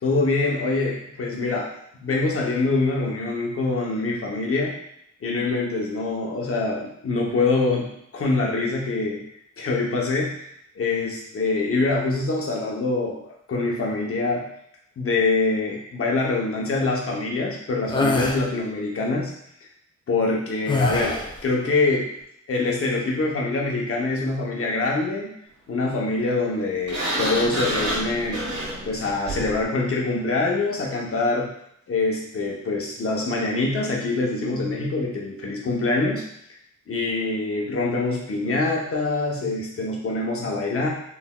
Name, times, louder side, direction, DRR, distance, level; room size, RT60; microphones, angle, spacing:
voice 1, 0.0-1.7 2.0-4.7 5.2-9.2 9.6-10.3 10.8-14.4 15.0-19.3 20.1-22.1 22.5-25.3 25.7-28.4 28.9-31.5 31.9-36.2 36.9-40.9, left 3 dB, 45° left, -1 dB, 0.8 m, -24 dB
sound 1, 17.9-18.4 20.7-21.4, left 2 dB, 15° left, 0.4 m, -23 dB
Sliding door, 26.9-29.6, right 1 dB, 65° right, 1.3 m, -28 dB
3.8 x 2.5 x 2.2 m, 0.72 s
cardioid pair, 110°, 30 cm